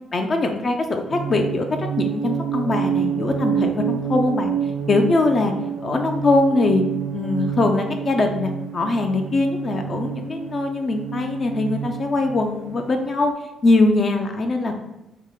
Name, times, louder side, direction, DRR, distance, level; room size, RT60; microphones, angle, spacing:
voice 1, 0.1-4.5 4.9-5.5 5.8-6.8 7.1-13.3 13.6-14.8, left 2 dB, 40° left, 4 dB, 0.4 m, -22 dB
sound 1, 1.1-13.1, right 8 dB, 75° right, 0.5 m, -28 dB
3.9 x 2.1 x 3.7 m, 0.96 s
cardioid pair, 90°, 0 cm